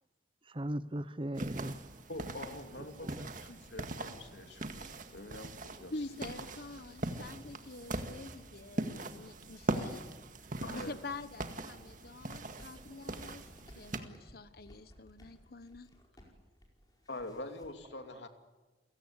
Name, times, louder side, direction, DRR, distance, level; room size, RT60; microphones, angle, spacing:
voice 1, 0.5-1.8 2.7-3.3 5.8-5.9 17.9-18.2, right 1 dB, 30° right, 0.9 m, -39 dB
sound 1, 1.4-14.0, right 2 dB, 45° right, 1.9 m, -41 dB
voice 2, 2.1-6.1 6.5-6.6 10.6-11.0 17.1-18.3, left 2 dB, 70° left, 2.8 m, -45 dB
voice 3, 5.9-10.0 10.7-13.4 13.7-15.9, left 3 dB, 55° left, 1.0 m, -46 dB
sound 2, 12.6-17.7, equal, 20° left, 4.9 m, -58 dB
29.0 x 17.0 x 9.9 m
head